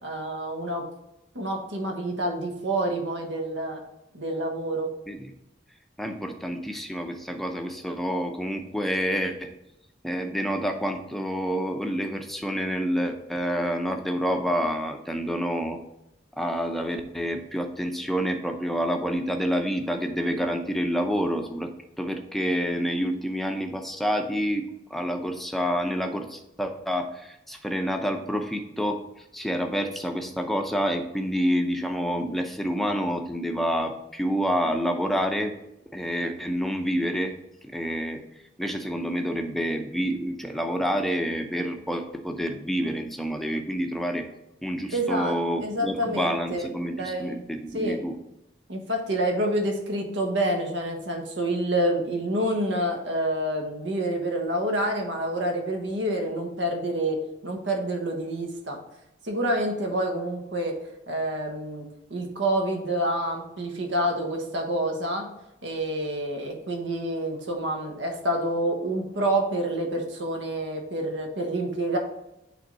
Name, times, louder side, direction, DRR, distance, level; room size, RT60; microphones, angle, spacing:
voice 1, 0.0-0.8 1.3-3.8 4.1-4.9 44.9-46.7 47.0-47.4 47.7-48.0 48.7-58.8 59.2-60.7 61.1-61.8 62.1-65.3 65.6-72.0, right 1 dB, 80° right, 3 dB, 1.3 m, -28 dB
voice 2, 6.0-9.5 10.0-15.8 16.4-21.7 22.0-29.0 29.3-35.5 35.9-37.3 37.7-38.2 38.6-44.3 44.6-48.2, equal, ahead, 4 dB, 0.6 m, -28 dB
8.2 x 3.5 x 4.0 m, 0.89 s
head